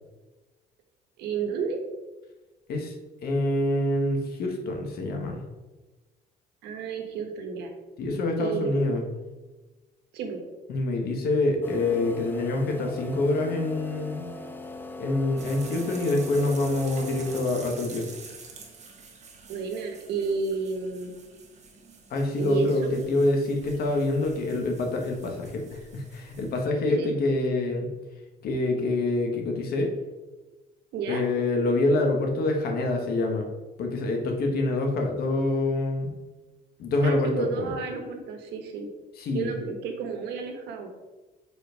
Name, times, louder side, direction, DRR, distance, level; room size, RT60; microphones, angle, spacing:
voice 1, 1.2-1.8 6.6-7.7 8.4-9.0 10.1-10.4 19.5-21.1 22.4-23.0 26.8-27.1 30.9-31.2 37.0-38.9 39.3-40.9, right 5 dB, 80° right, 4 dB, 1.2 m, -31 dB
voice 2, 3.2-5.4 8.0-9.0 10.7-14.3 15.0-18.0 22.1-27.9 28.4-29.9 31.1-33.4 33.8-36.1 36.8-37.3 37.5-37.7 39.2-39.5, left 2 dB, 65° left, 2 dB, 1.5 m, -26 dB
sound 1, 11.6-17.9, left 2 dB, 10° left, 0.6 m, -40 dB
sound 2, 15.4-26.7, right 4 dB, 40° right, 1.4 m, -47 dB
5.4 x 4.3 x 5.1 m, 1.2 s
cardioid pair, 110°, 17 cm